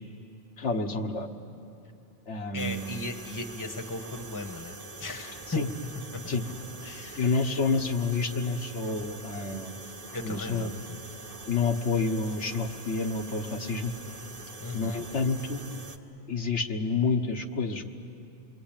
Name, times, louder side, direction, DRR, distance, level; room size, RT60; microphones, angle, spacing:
voice 1, 0.6-1.3 2.3-2.9 5.5-5.7 6.3-6.4 7.2-9.8 10.2-10.8 11.5-13.9 14.7-15.6 16.3-17.9, left 4 dB, 80° left, 3 dB, 1.5 m, -29 dB
voice 2, 2.5-5.6 6.1-6.4 6.8-7.5 10.1-11.0 14.6-15.0, left 3 dB, 15° left, 7 dB, 1.1 m, -37 dB
sound 1, 2.6-16.0, right 3 dB, 35° right, 1.2 m, -44 dB
28.0 x 22.5 x 8.9 m, 2.6 s
omnidirectional pair, 1.2 m